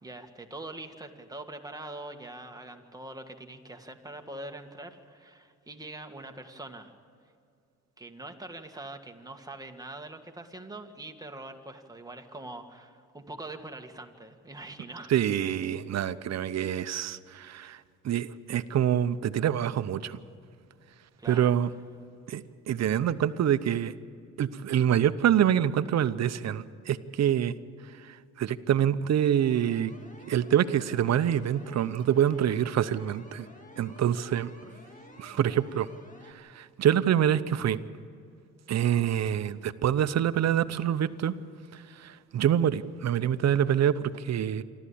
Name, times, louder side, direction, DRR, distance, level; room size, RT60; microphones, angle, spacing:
voice 1, 0.0-6.9 8.0-15.2 15.8-16.0 21.2-21.6, right 2 dB, 10° right, 4 dB, 1.9 m, -43 dB
voice 2, 15.1-17.8 18.0-20.2 21.3-21.7 22.3-23.9 24.4-27.5 28.4-29.9 30.3-33.5 33.8-34.5 35.2-35.9 36.5-37.8 38.7-41.3 42.0-44.6, right 10 dB, 60° right, 13 dB, 0.8 m, -26 dB
sound 1, 29.2-36.3, left 1 dB, 25° left, 2.2 m, -52 dB
27.0 x 13.0 x 8.6 m, 2.4 s
cardioid pair, 90°, 30 cm